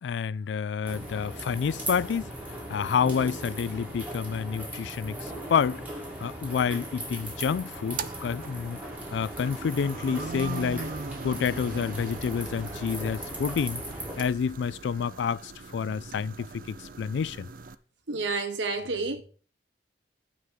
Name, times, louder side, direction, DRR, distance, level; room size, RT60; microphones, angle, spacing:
voice 1, 0.0-2.3 2.7-5.8 6.2-8.8 9.1-10.9 11.2-13.8 14.2-17.5, left 6 dB, 75° left, 0.3 m, -29 dB
sound 1, 0.8-14.2, right 1 dB, 10° right, 2.2 m, -38 dB
sound 2, 7.8-17.7, right 4 dB, 50° right, 0.5 m, -41 dB
voice 2, 18.1-19.2, right 3 dB, 80° right, 1.1 m, -29 dB
9.4 x 3.6 x 6.3 m
head